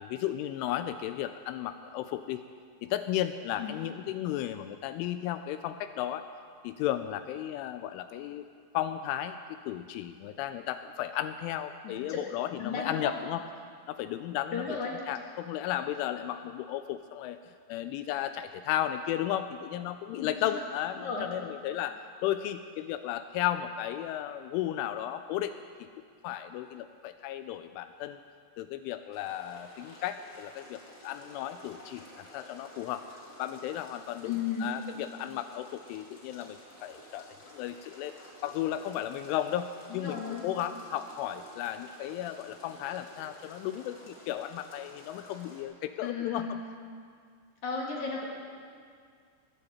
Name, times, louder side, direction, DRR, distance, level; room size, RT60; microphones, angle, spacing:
voice 1, 0.0-2.4 2.8-6.3 6.6-8.5 8.7-13.4 13.9-14.7 15.1-17.4 17.7-25.9 26.2-28.2 28.6-33.1 33.4-38.1 38.4-46.6, left 12 dB, 85° left, 10 dB, 2.8 m, -34 dB
voice 2, 11.8-12.2 12.6-13.1 14.5-15.0 20.1-20.6 21.0-21.3 34.2-34.8 39.9-40.5 46.0-46.6 47.6-48.3, left 5 dB, 55° left, -2 dB, 2.2 m, -34 dB
sound 1, 29.1-45.6, equal, 30° left, 1.7 m, -52 dB
21.0 x 15.0 x 4.2 m, 2.1 s
omnidirectional pair, 5.9 m